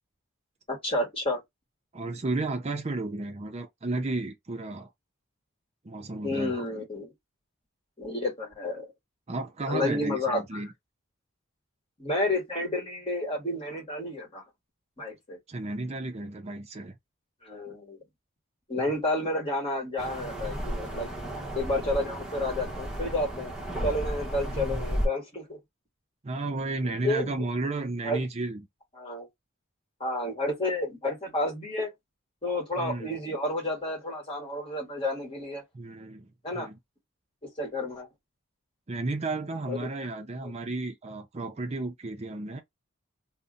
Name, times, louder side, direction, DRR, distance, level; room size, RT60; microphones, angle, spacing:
voice 1, 0.7-1.4 6.2-7.1 8.0-8.9 9.7-10.6 12.0-14.4 15.0-15.4 17.4-18.0 18.7-21.1 21.5-23.5 23.8-25.6 27.0-27.4 28.0-28.2 29.0-29.3 30.0-31.9 32.4-35.6 36.4-36.7 37.6-38.1 39.7-39.9 40.4-40.5, left 1 dB, 30° left, 1.5 m, -30 dB
voice 2, 1.9-4.9 5.8-6.6 9.3-10.7 15.5-17.0 24.5-24.8 26.2-28.6 32.8-33.1 35.7-36.3 36.5-36.8 38.9-42.6, right 2 dB, 30° right, 0.5 m, -33 dB
sound 1, 20.0-25.1, equal, ahead, 1.0 m, -33 dB
2.7 x 2.1 x 3.7 m
head